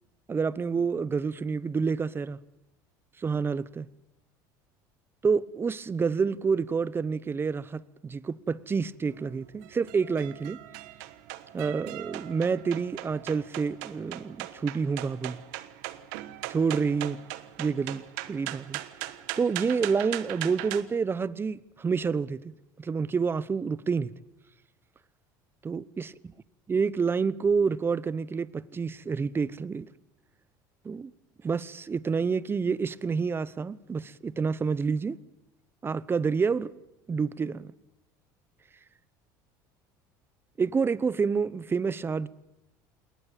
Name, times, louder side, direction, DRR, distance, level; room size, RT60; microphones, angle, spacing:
voice 1, 0.3-2.4 3.2-3.9 5.2-10.6 11.5-15.4 16.5-17.2 17.6-18.8 19.4-24.1 25.6-26.1 26.7-29.9 30.8-31.1 31.4-35.2 35.8-36.7 37.1-37.7 40.6-42.3, right 5 dB, 25° right, 0.9 m, -28 dB
sound 1, 9.1-20.8, right 16 dB, 75° right, 1.3 m, -40 dB
21.0 x 18.5 x 8.7 m
supercardioid pair, 100°, 10 cm